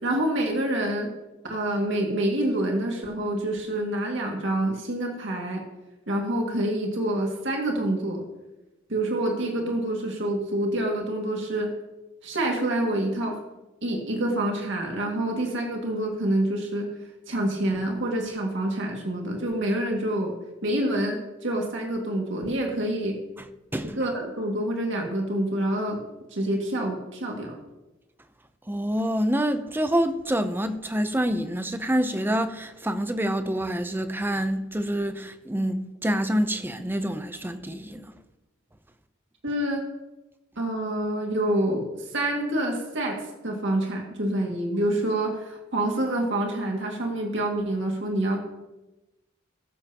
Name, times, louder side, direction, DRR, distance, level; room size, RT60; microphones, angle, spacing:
voice 1, 0.0-1.1 1.5-5.6 6.1-8.2 8.9-11.7 12.2-13.4 13.8-16.9 17.3-20.3 20.6-23.2 23.8-26.0 26.3-27.6 39.4-39.8 40.6-41.8 42.1-48.4, right 1 dB, 65° right, 2.2 m, -27 dB
voice 2, 28.7-38.1, equal, 10° right, 0.7 m, -27 dB
19.5 x 7.5 x 2.9 m
head